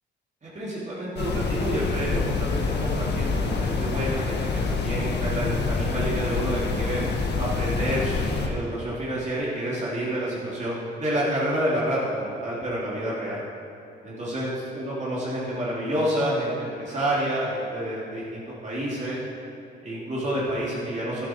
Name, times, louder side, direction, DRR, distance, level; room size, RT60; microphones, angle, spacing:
voice 1, 0.4-4.4 4.7-7.0 7.4-13.4 14.0-19.2 19.8-21.3, right 1 dB, 35° right, -7 dB, 3.3 m, -29 dB
sound 1, 1.2-8.5, left 4 dB, 60° left, 1.5 m, -26 dB
11.5 x 11.5 x 4.7 m, 2.6 s
cardioid pair, 90°, 20 cm